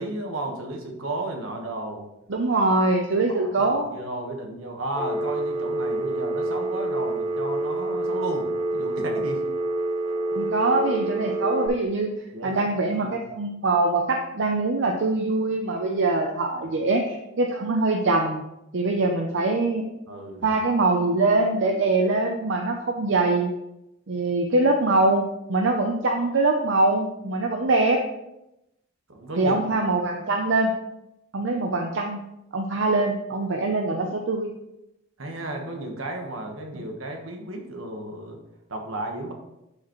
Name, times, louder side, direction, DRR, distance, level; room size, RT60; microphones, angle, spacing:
voice 1, 0.0-2.1 3.3-9.5 12.3-13.2 20.1-20.5 29.1-29.5 35.2-38.4 38.7-39.3, right 2 dB, 80° right, 2 dB, 1.4 m, -33 dB
voice 2, 2.3-3.9 10.3-12.1 12.4-18.4 18.7-19.9 20.4-23.5 24.1-28.0 29.4-30.7 31.3-32.3 32.5-34.5, right 2 dB, 65° right, 3 dB, 0.6 m, -23 dB
Telephone, 4.9-11.7, right 2 dB, 35° right, 2.1 m, -27 dB
11.5 x 4.9 x 3.1 m, 0.89 s
head